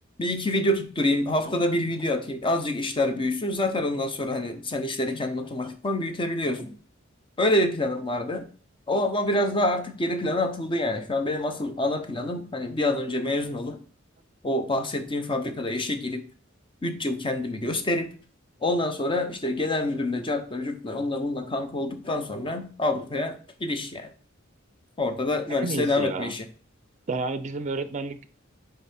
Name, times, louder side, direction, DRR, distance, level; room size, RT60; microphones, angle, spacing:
voice 1, 0.2-6.7 7.4-8.5 8.9-13.8 14.4-16.2 16.8-18.1 18.6-24.1 25.0-26.5, left 1 dB, 25° left, 0.7 m, -27 dB
voice 2, 25.6-26.3 27.1-28.3, right 3 dB, 35° right, 0.5 m, -30 dB
5.3 x 4.5 x 4.3 m
head